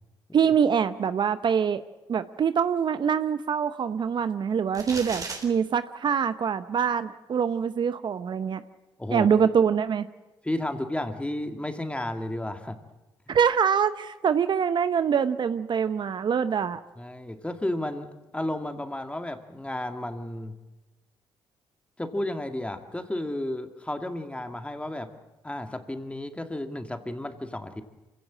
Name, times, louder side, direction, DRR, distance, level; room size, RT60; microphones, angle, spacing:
voice 1, 0.3-1.8 2.1-8.6 9.1-10.1 13.3-16.8, right 7 dB, 55° right, 12 dB, 0.8 m, -24 dB
sound 1, 4.7-5.4, right 3 dB, 40° right, 3.8 m, -35 dB
voice 2, 10.4-12.8 13.3-13.4 17.0-20.5 22.0-25.1 25.4-27.8, left 1 dB, 10° left, 7 dB, 2.2 m, -32 dB
25.0 x 16.5 x 7.5 m, 1.1 s
supercardioid pair, 55°, 10 cm